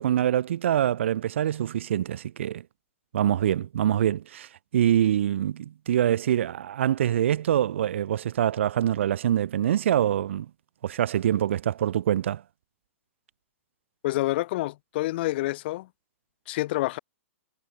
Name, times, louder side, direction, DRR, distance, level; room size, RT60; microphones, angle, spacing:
voice 1, 0.0-2.6 3.1-10.5 10.8-12.4, right 11 dB, 60° right, 2.5 m, -25 dB
voice 2, 14.0-15.9 16.5-17.0, left 18 dB, 50° left, 4.6 m, -27 dB
figure-of-eight pair, 110°, 7 cm